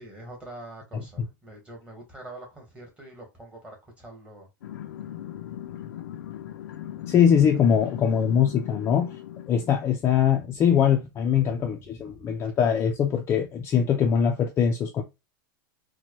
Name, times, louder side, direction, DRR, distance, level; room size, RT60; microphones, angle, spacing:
voice 1, 0.0-4.5 11.4-12.2, right 1 dB, 10° right, 1.5 m, -45 dB
sound 1, 4.6-9.7, left 11 dB, 90° left, 0.5 m, -39 dB
voice 2, 7.1-9.2 9.5-15.0, left 8 dB, 25° left, 0.5 m, -22 dB
4.3 x 2.2 x 3.0 m
supercardioid pair, 150°, 11 cm